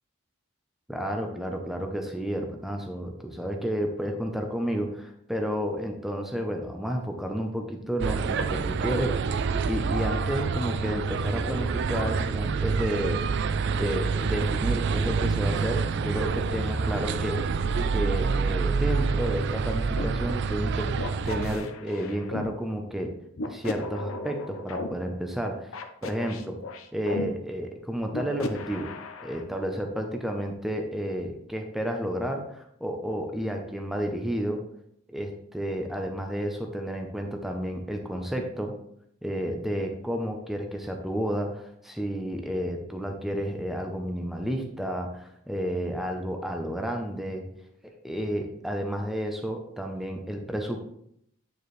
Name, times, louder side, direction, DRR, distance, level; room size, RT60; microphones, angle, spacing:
voice 1, 0.9-9.3 9.6-13.2 13.7-17.4 17.9-20.9 21.2-23.1 23.4-26.6 26.9-28.9 29.2-34.6 35.1-38.7 39.2-47.5 48.0-50.8, equal, ahead, 3 dB, 0.6 m, -31 dB
sound 1, 8.0-21.6, right 5 dB, 55° right, 0.4 m, -27 dB
sound 2, 20.0-20.1 21.0-22.5 23.4-24.9 25.7-27.3 28.1-29.4, left 3 dB, 75° left, 0.8 m, -35 dB
9.3 x 4.7 x 3.2 m, 0.72 s
head